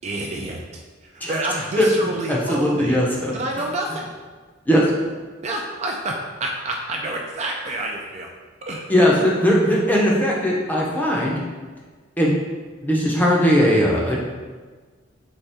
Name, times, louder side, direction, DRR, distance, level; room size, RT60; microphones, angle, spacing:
voice 1, 0.0-0.6 1.0-3.1 3.3-4.1 5.4-8.3 8.6-8.9, right 2 dB, 35° right, 0 dB, 0.4 m, -28 dB
voice 2, 2.3-3.3 4.7-4.9 8.9-11.4 12.2-12.4 12.8-14.2, equal, 10° left, -3 dB, 0.6 m, -19 dB
4.1 x 3.3 x 3.4 m, 1.4 s
head